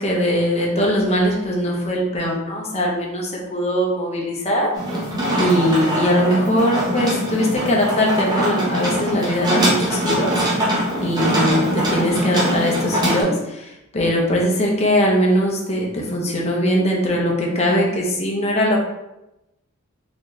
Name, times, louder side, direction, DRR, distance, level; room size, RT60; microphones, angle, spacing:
voice 1, 0.0-4.7 5.4-10.3 11.0-18.8, equal, 30° left, -2 dB, 0.7 m, -21 dB
sound 1, 4.7-13.2, equal, 20° right, 0.9 m, -22 dB
4.2 x 2.6 x 3.1 m, 0.91 s
head